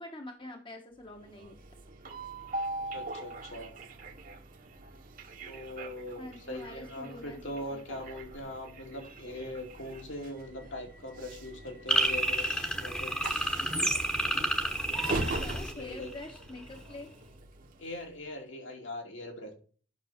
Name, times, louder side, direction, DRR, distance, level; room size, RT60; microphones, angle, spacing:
voice 1, 0.0-1.6 6.2-7.4 7.7-8.0 14.9-15.1 15.4-17.1, left 2 dB, 25° left, 4 dB, 1.1 m, -45 dB
Train, 1.0-18.3, right 2 dB, 45° right, 1.2 m, -42 dB
voice 2, 2.9-3.7 5.5-13.2 15.3-16.1 17.8-19.5, left 1 dB, 70° left, 1 dB, 2.9 m, -41 dB
sound 1, 11.9-16.4, right 1 dB, 5° left, 1.1 m, -30 dB
9.3 x 6.2 x 4.3 m, 0.40 s
head